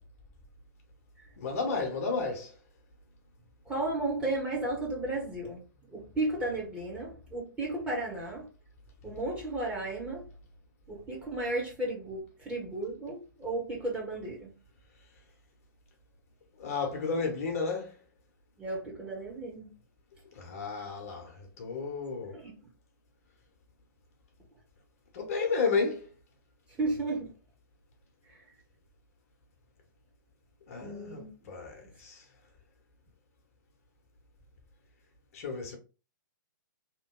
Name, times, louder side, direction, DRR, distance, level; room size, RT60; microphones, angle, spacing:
voice 1, 1.4-2.6 16.6-18.0 20.3-22.4 25.1-26.1 30.7-32.3 35.3-35.8, left 4 dB, 45° left, 1.0 m, -32 dB
voice 2, 3.6-5.6 5.9-8.5 9.0-10.3 10.9-14.5 18.6-19.7 22.4-22.5 26.8-27.3 28.3-28.4 30.7-31.3, right 2 dB, 10° right, 1.1 m, -34 dB
2.9 x 2.2 x 3.6 m
figure-of-eight pair, 115°, 11 cm